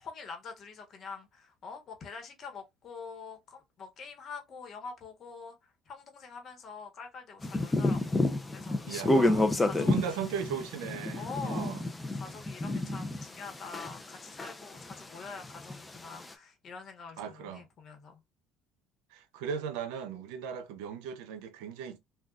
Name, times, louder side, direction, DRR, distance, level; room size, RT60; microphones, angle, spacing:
voice 1, 0.0-8.8 9.2-10.3 11.1-11.8 12.1-18.2, left 5 dB, 50° left, 1.1 m, -45 dB
sound 1, 7.4-14.1 14.4-16.3, left 2 dB, 15° left, 0.5 m, -29 dB
voice 2, 8.9-11.8 12.6-13.0 17.2-17.7 19.1-22.0, right 7 dB, 90° right, 0.6 m, -38 dB
3.7 x 2.4 x 2.4 m
supercardioid pair, 95°, 0 cm